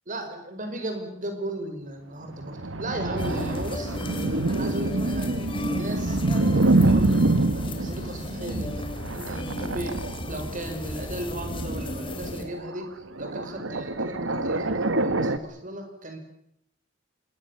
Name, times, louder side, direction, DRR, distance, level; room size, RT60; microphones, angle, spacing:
voice 1, 0.1-3.9 4.5-6.2 6.6-7.1 7.4-8.9 9.1-12.9 13.2-16.2, right 1 dB, 40° right, 6 dB, 5.0 m, -36 dB
sound 1, 2.3-10.6 11.4-12.8 13.2-15.4, right 2 dB, 75° right, 1.5 m, -26 dB
sound 2, 3.2-12.4, left 1 dB, 25° left, 3.4 m, -35 dB
27.0 x 21.5 x 7.2 m, 0.72 s
head